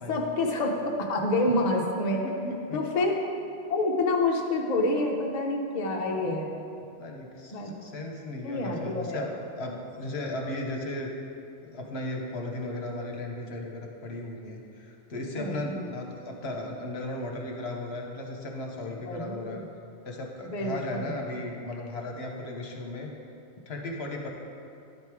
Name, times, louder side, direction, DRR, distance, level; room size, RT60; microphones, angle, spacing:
voice 1, 0.1-2.2 2.7-3.2 3.7-6.5 7.5-7.7 8.4-9.2 15.4-15.8 19.0-19.6 20.5-21.1, left 2 dB, 40° left, 0 dB, 0.9 m, -28 dB
voice 2, 2.2-2.8 7.0-11.1 11.6-19.6 20.0-23.1 23.7-24.3, left 2 dB, 65° left, 1 dB, 1.2 m, -36 dB
11.5 x 5.2 x 4.7 m, 2.5 s
omnidirectional pair, 1.2 m